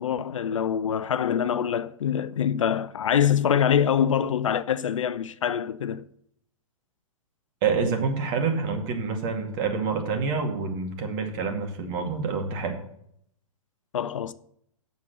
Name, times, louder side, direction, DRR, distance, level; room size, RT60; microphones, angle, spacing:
voice 1, 0.0-6.0 13.9-14.3, left 8 dB, 65° left, 0.6 m, -24 dB
voice 2, 7.6-12.8, right 5 dB, 40° right, 2.2 m, -27 dB
8.3 x 7.3 x 6.6 m
figure-of-eight pair, 110°, 18 cm